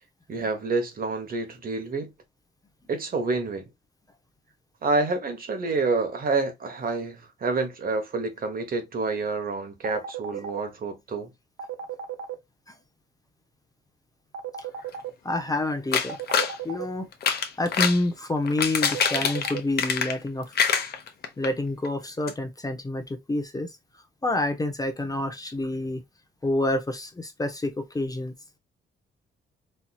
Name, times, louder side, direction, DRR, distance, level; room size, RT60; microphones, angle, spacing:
voice 1, 0.3-2.1 2.9-3.7 4.8-11.3, right 3 dB, 45° right, 1.1 m, -28 dB
sound 1, 9.8-10.6 11.6-12.3 14.3-15.1 16.1-16.8 18.8-19.6, right 8 dB, 85° right, 0.6 m, -34 dB
voice 2, 15.2-16.2 16.6-17.1 17.6-20.6 21.4-23.8 24.2-26.0 26.4-28.3, left 2 dB, 20° left, 0.7 m, -28 dB
sound 2, 15.9-16.6 17.1-18.0 18.4-20.3 20.5-21.5 21.8-21.9 22.3-22.4, left 6 dB, 55° left, 0.8 m, -25 dB
4.4 x 2.8 x 2.3 m
cardioid pair, 90°, 20 cm